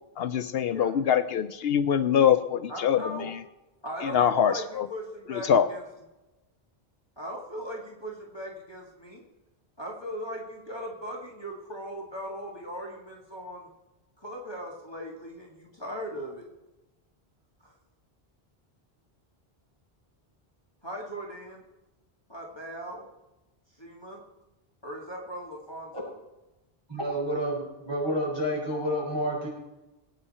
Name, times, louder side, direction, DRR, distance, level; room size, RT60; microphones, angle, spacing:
voice 1, 0.2-3.3 4.0-4.9 5.3-5.7, left 8 dB, 75° left, 11 dB, 0.8 m, -24 dB
voice 2, 2.7-3.3 3.8-5.8 7.2-9.2 9.8-13.7 14.2-16.5 17.6-17.7 20.8-21.6 22.3-23.1 23.8-24.2 24.8-26.2, equal, 25° left, -2 dB, 2.0 m, -39 dB
voice 3, 26.9-29.5, equal, 25° right, -4 dB, 5.5 m, -29 dB
20.5 x 9.0 x 4.3 m, 1.0 s
omnidirectional pair, 1.0 m